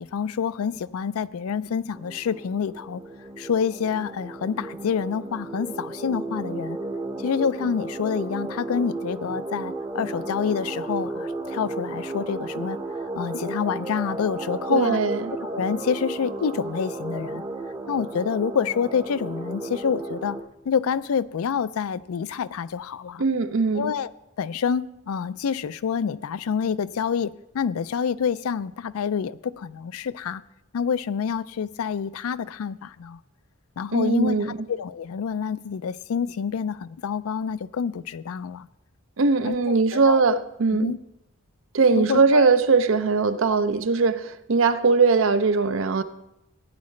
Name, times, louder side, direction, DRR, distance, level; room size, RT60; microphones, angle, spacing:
voice 1, 0.0-3.0 3.4-6.8 7.2-12.8 13.2-15.0 15.4-17.4 17.9-20.4 20.7-23.2 23.7-24.1 24.4-30.4 30.7-33.2 33.8-38.7 39.4-40.4 40.7-41.0 41.9-42.5, left 6 dB, 90° left, 0.4 m, -27 dB
sound 1, 1.9-20.4, right 2 dB, 20° right, 0.7 m, -33 dB
voice 2, 14.7-15.3 23.2-23.9 33.9-34.6 39.2-40.9 41.7-46.0, right 4 dB, 70° right, 0.6 m, -20 dB
15.5 x 9.6 x 3.2 m
head